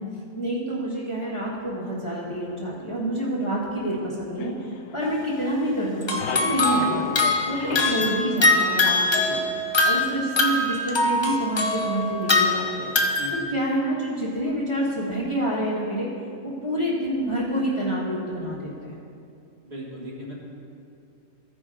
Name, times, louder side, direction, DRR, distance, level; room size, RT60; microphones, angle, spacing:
voice 1, 0.4-4.5 4.9-12.9 13.3-16.1 16.4-19.0, right 1 dB, 20° left, -7 dB, 1.3 m, -28 dB
sound 1, 4.4-5.5 5.8-9.5, left 7 dB, 70° left, 0.9 m, -36 dB
sound 2, 5.0-5.2 6.0-13.4, left 2 dB, 40° left, 0.4 m, -23 dB
voice 2, 19.6-20.3, left 2 dB, 45° right, -6 dB, 2.0 m, -37 dB
15.0 x 5.1 x 3.8 m, 2.5 s
omnidirectional pair, 1.5 m